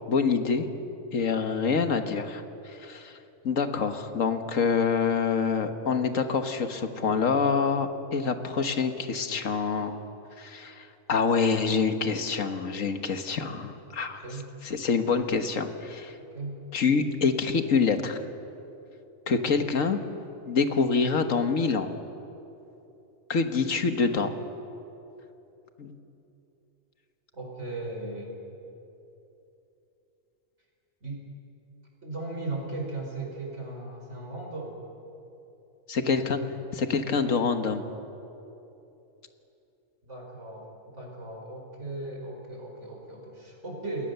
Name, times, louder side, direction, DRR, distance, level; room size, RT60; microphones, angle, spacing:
voice 1, 0.1-0.7 1.1-3.2 3.4-9.9 10.4-14.2 14.6-16.2 16.7-18.2 19.3-20.0 20.5-21.9 23.3-24.3 25.8-26.0 35.9-36.4 36.7-37.8, left 5 dB, 85° left, 7 dB, 1.8 m, -26 dB
voice 2, 27.3-28.4 31.0-31.2 32.0-34.8 40.0-44.1, right 2 dB, 65° right, 0 dB, 5.2 m, -37 dB
28.5 x 20.5 x 6.9 m, 2.9 s
omnidirectional pair, 1.3 m